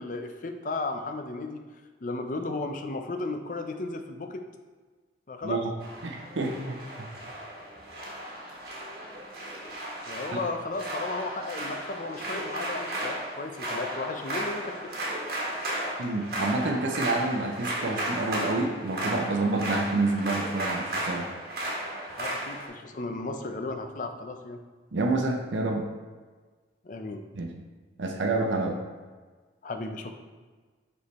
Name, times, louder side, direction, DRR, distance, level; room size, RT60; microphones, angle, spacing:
voice 1, 0.0-1.6 2.0-4.4 5.3-5.6 10.1-14.9 22.2-24.6 26.8-27.2 29.6-30.1, left 3 dB, 45° left, 6 dB, 0.5 m, -34 dB
sound 1, 5.8-22.7, right 1 dB, 50° right, 1.3 m, -35 dB
voice 2, 6.0-7.1 10.3-10.4 16.0-21.3 24.9-25.8 27.4-27.5 28.0-28.8, right 2 dB, 85° right, 1 dB, 0.7 m, -28 dB
5.3 x 4.4 x 4.1 m, 1.4 s
head